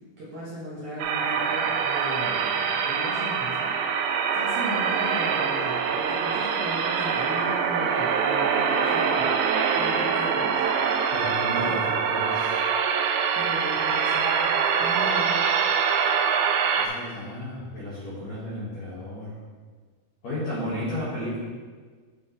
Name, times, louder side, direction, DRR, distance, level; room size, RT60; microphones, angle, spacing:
voice 1, 0.2-10.6 11.6-11.7 13.4-14.5 14.8-15.4, equal, 60° right, -8 dB, 2.2 m, -37 dB
sound 1, 1.0-16.9, right 6 dB, 80° right, 2.4 m, -24 dB
voice 2, 11.1-12.6 16.7-19.4 20.2-21.4, left 1 dB, 55° left, -9 dB, 2.2 m, -33 dB
9.5 x 7.0 x 3.2 m, 1.5 s
omnidirectional pair, 5.2 m